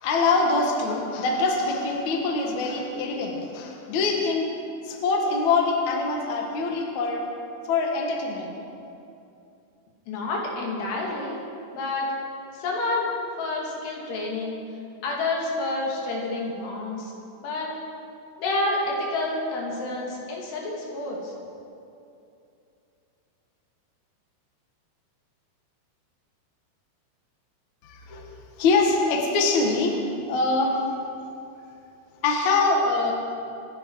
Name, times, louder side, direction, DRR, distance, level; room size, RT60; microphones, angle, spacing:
voice 1, 0.0-4.5 4.8-7.3 7.7-8.5 27.8-28.3 28.6-30.9 32.2-33.1, left 3 dB, 55° left, 0 dB, 2.6 m, -24 dB
voice 2, 10.1-11.4 11.7-12.1 12.5-13.1 13.4-14.6 15.0-17.1 17.4-17.7 18.4-21.3, left 2 dB, 80° left, -2 dB, 4.6 m, -29 dB
27.0 x 11.0 x 4.8 m, 2.7 s
omnidirectional pair, 4.7 m